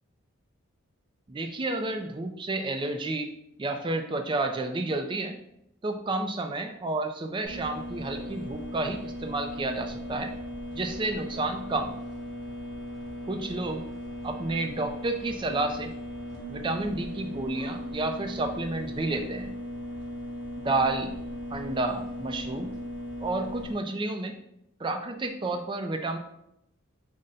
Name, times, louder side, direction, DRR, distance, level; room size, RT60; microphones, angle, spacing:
voice 1, 1.3-3.3 3.6-5.4 5.8-10.3 10.8-12.0 13.3-13.8 14.2-15.9 16.5-19.5 20.6-21.2 21.5-22.7 23.2-24.4 24.8-26.2, right 2 dB, 25° right, 6 dB, 0.3 m, -30 dB
sound 1, 7.4-23.7, equal, 85° right, 1.5 m, -38 dB
5.3 x 2.1 x 3.8 m, 0.79 s
head